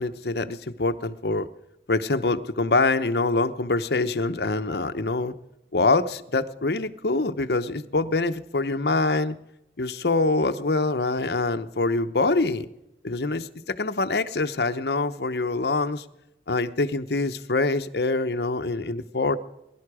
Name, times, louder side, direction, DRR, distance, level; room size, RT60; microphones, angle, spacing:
voice 1, 0.0-1.5 1.9-5.3 5.7-9.3 9.8-12.7 13.0-16.0 16.5-19.4, left 3 dB, 65° left, 9 dB, 0.9 m, -25 dB
21.5 x 11.5 x 4.9 m, 0.88 s
head